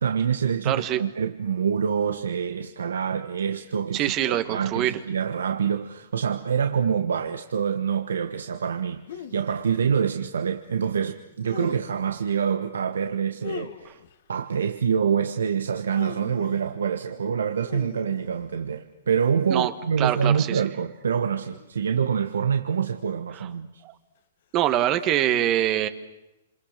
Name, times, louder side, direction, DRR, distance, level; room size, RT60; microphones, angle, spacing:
voice 1, 0.0-14.0 14.3-23.8, right 7 dB, 85° right, 1.3 m, -26 dB
voice 2, 0.6-1.0 3.9-4.9 19.5-19.7 20.0-20.6 23.8-23.9 24.5-25.9, right 12 dB, 35° right, 1.5 m, -24 dB
sound 1, 9.1-9.6 11.4-12.1 13.4-14.2 15.7-16.8 17.6-18.8 20.1-20.7 21.4-21.7 23.0-23.5 24.7-25.0, left 8 dB, 65° left, 1.7 m, -41 dB
28.0 x 26.5 x 6.7 m
hypercardioid pair, 130°, 0 cm